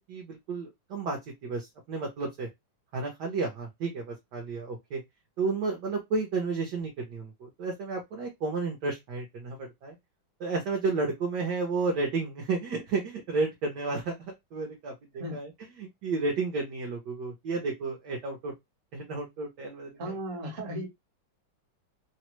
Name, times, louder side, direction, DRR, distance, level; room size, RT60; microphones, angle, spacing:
voice 1, 0.0-2.5 2.9-5.0 5.4-9.9 10.4-14.9 15.3-15.5 15.8-18.5 18.9-20.1, right 3 dB, 65° right, 1.2 m, -32 dB
voice 2, 19.9-20.9, equal, 45° right, 1.3 m, -35 dB
3.3 x 2.1 x 2.9 m
omnidirectional pair, 2.1 m